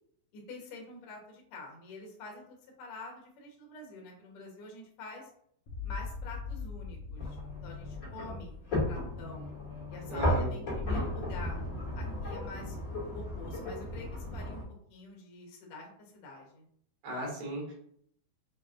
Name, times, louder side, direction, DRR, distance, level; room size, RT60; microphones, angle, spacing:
voice 1, 0.3-5.3 5.8-9.5 9.9-11.6 11.9-12.8 13.1-14.6 14.9-16.6, left 2 dB, 85° left, 0 dB, 1.2 m, -47 dB
sound 1, 5.7-10.0, left 5 dB, 70° left, 2.1 m, -42 dB
sound 2, 7.2-14.6, left 1 dB, 35° left, 1.5 m, -35 dB
voice 2, 10.1-10.7 17.0-17.7, right 1 dB, 75° right, -2 dB, 3.6 m, -36 dB
7.2 x 2.5 x 2.5 m, 0.66 s
omnidirectional pair, 4.3 m